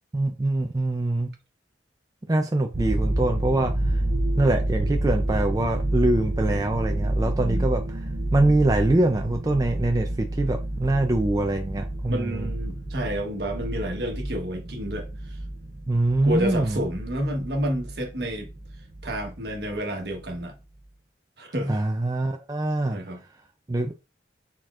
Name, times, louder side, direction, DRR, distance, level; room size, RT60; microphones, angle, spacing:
voice 1, 0.1-1.3 2.3-3.7 4.4-7.8 8.3-12.4 15.9-16.8 21.7-23.0 23.7-24.0, right 2 dB, 20° right, 0.4 m, -24 dB
sound 1, 2.7-19.8 20.1-20.4, right 1 dB, 50° right, 0.8 m, -29 dB
voice 2, 7.2-7.7 12.1-15.4 16.2-18.5 19.0-20.5 21.4-21.8 22.8-23.2, equal, 65° right, 1.2 m, -30 dB
4.3 x 4.2 x 2.4 m
head